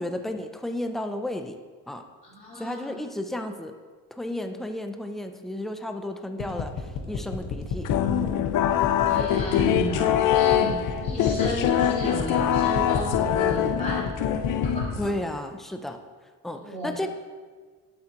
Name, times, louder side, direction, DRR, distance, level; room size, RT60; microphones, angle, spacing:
voice 1, 0.0-1.6 1.9-2.0 2.5-3.7 4.1-7.9 8.2-8.5 15.0-16.0 16.4-17.1, left 1 dB, ahead, 6 dB, 0.4 m, -33 dB
voice 2, 2.2-3.0 9.0-14.1 14.6-15.1 16.5-17.1, right 1 dB, 20° left, -7 dB, 3.0 m, -34 dB
sound 1, 6.4-14.9, left 7 dB, 85° left, 1.3 m, -30 dB
sound 2, 7.9-15.2, left 10 dB, 70° left, 0.5 m, -24 dB
11.5 x 7.6 x 2.9 m, 1.5 s
cardioid pair, 155°, 33 cm